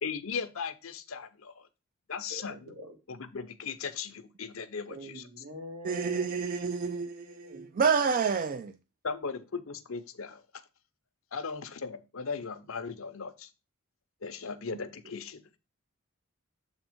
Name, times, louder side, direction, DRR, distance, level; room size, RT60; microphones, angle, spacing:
voice 1, 0.0-1.6 2.1-2.6 3.1-5.2 9.0-10.4 11.3-13.5 14.2-15.6, left 5 dB, 70° left, 0.7 m, -37 dB
voice 2, 2.3-3.0 4.9-6.3 6.7-7.7, left 1 dB, 80° right, 1.8 m, -45 dB
voice 3, 5.8-8.7, right 5 dB, 40° right, 0.3 m, -28 dB
7.2 x 3.5 x 5.0 m
head